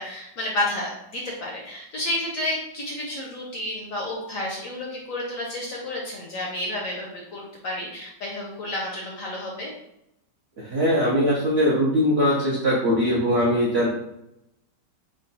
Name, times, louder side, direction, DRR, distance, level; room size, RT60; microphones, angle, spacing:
voice 1, 0.0-9.7, left 1 dB, 65° left, -2 dB, 0.8 m, -31 dB
voice 2, 10.6-13.9, equal, 65° right, -4 dB, 0.6 m, -21 dB
3.6 x 2.2 x 3.9 m, 0.83 s
omnidirectional pair, 2.0 m